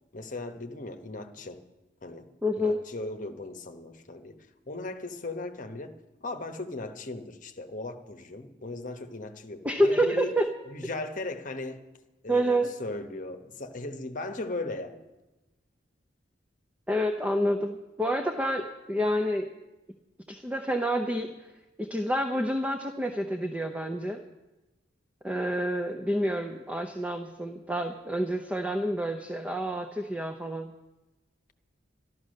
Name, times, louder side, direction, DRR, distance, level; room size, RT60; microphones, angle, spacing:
voice 1, 0.1-1.6 2.0-2.3 2.6-10.4 10.7-11.8 12.2-15.0, left 2 dB, 45° left, 7 dB, 1.1 m, -37 dB
voice 2, 2.4-2.8 9.6-10.5 12.3-12.7 16.9-19.5 20.3-21.5 21.8-24.2 25.2-30.7, equal, 10° right, 5 dB, 0.7 m, -28 dB
12.5 x 12.5 x 6.5 m, 1.1 s
head